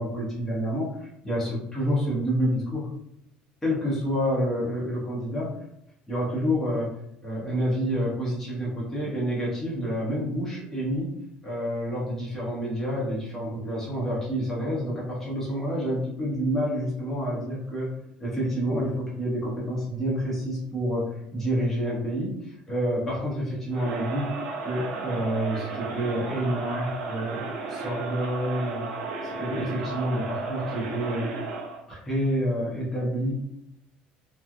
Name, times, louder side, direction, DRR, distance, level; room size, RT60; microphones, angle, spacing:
voice 1, 0.0-2.9 3.6-5.5 6.1-6.9 7.2-11.2 11.4-17.9 18.2-24.3 24.6-27.4 27.7-28.9 29.2-31.3 31.9-33.3, equal, 10° left, -6 dB, 0.7 m, -28 dB
Crowd, 23.7-31.8, right 4 dB, 70° right, 0.7 m, -34 dB
3.0 x 2.3 x 2.4 m, 0.78 s
cardioid pair, 175°, 3 cm